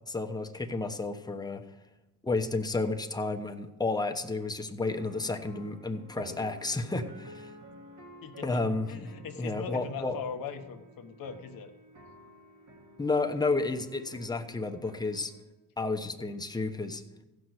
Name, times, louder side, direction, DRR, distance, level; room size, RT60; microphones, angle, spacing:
voice 1, 0.1-1.6 2.2-7.5 8.4-9.1 9.4-10.2 13.0-15.3 15.8-17.0, left 3 dB, 10° left, 5 dB, 1.0 m, -31 dB
sound 1, 4.8-15.4, left 1 dB, 55° right, 2.5 m, -51 dB
voice 2, 8.2-11.7 16.2-16.3, left 6 dB, 70° left, 5 dB, 1.2 m, -40 dB
15.5 x 6.0 x 8.0 m, 1.1 s
cardioid pair, 95°, 35 cm